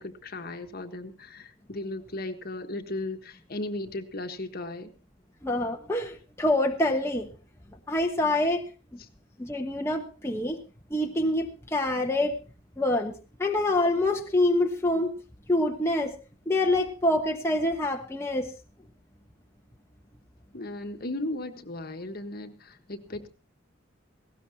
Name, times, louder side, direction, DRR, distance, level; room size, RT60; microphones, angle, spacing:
voice 1, 0.0-4.9 20.5-23.3, left 2 dB, 50° left, 7 dB, 1.5 m, -36 dB
voice 2, 5.4-7.3 7.9-8.6 9.4-10.6 10.9-12.4 12.8-13.1 13.4-15.1 15.5-16.2 16.5-18.5, left 1 dB, 15° left, 2 dB, 1.2 m, -26 dB
19.0 x 17.0 x 2.9 m, 0.31 s
head